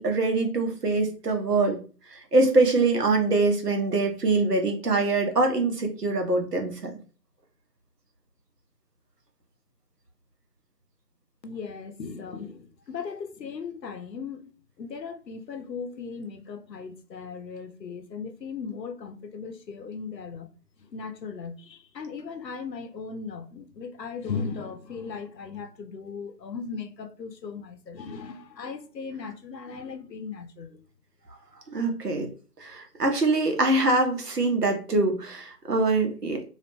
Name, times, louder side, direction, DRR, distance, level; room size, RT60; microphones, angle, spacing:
voice 1, 0.0-1.8 2.1-6.9 31.7-32.3 32.6-36.5, right 2 dB, 70° right, 0.8 m, -24 dB
voice 2, 11.4-14.5 14.8-20.5 20.9-30.8, left 5 dB, 90° left, 0.6 m, -37 dB
2.4 x 2.1 x 2.9 m
figure-of-eight pair, 175°, 49 cm